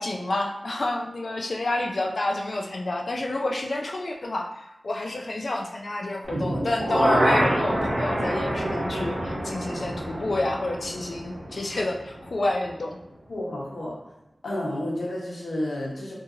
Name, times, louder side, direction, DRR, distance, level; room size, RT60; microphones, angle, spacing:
voice 1, 0.0-13.0, left 2 dB, 65° left, 1 dB, 0.4 m, -29 dB
sound 1, 6.2-12.3 12.6-12.7, right 1 dB, 75° right, 0.8 m, -27 dB
voice 2, 13.3-13.9 14.4-16.1, left 1 dB, 85° left, -5 dB, 0.9 m, -31 dB
2.7 x 2.7 x 2.5 m, 0.90 s
wide cardioid pair, 65°, 0 cm